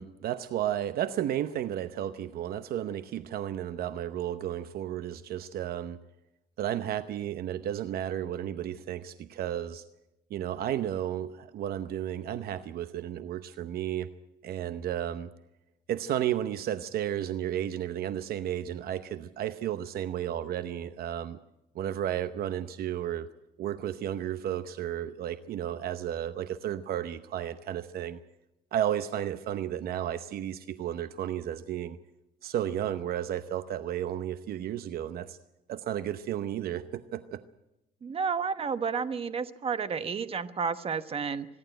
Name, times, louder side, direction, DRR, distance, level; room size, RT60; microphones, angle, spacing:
voice 1, 0.0-6.0 6.6-9.8 10.3-14.1 14.4-15.3 15.9-21.4 21.7-23.3 23.6-28.2 28.7-32.0 32.4-35.4 35.7-37.4, right 11 dB, 65° right, 12 dB, 0.8 m, -33 dB
voice 2, 38.0-41.5, right 6 dB, 35° right, 12 dB, 1.1 m, -31 dB
24.5 x 11.5 x 9.0 m, 0.90 s
cardioid pair, 110°, 17 cm